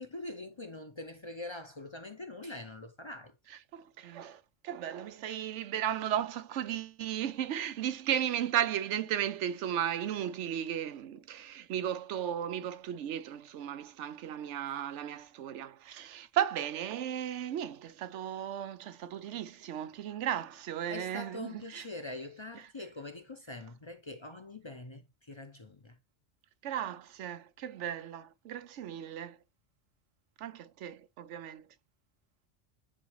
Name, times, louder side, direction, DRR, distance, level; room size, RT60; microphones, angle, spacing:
voice 1, 0.0-3.3 20.9-25.0 25.3-25.9, left 2 dB, 30° left, 0.6 m, -43 dB
voice 2, 3.5-21.9 22.5-22.7 26.6-29.4 30.4-31.7, right 10 dB, 85° right, 0.9 m, -35 dB
10.0 x 3.8 x 3.0 m
omnidirectional pair, 1.2 m